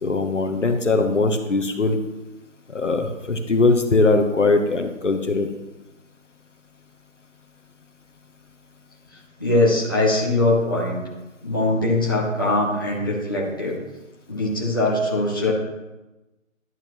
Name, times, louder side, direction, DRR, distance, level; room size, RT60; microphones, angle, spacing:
voice 1, 0.0-2.0 2.7-5.5, left 3 dB, 60° left, 5 dB, 1.2 m, -20 dB
voice 2, 9.1-11.0 11.4-13.8 14.3-15.5, left 2 dB, 15° left, -7 dB, 1.3 m, -22 dB
11.0 x 8.6 x 3.1 m, 1.0 s
figure-of-eight pair, 175°, 40 cm